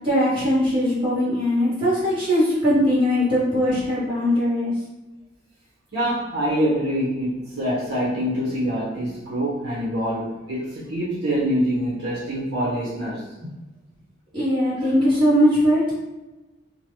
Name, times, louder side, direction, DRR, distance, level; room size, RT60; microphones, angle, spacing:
voice 1, 0.0-4.7 14.3-15.9, equal, 25° right, -10 dB, 1.3 m, -20 dB
voice 2, 5.9-13.2, equal, 60° right, -9 dB, 1.0 m, -25 dB
2.8 x 2.2 x 3.1 m, 1.1 s
head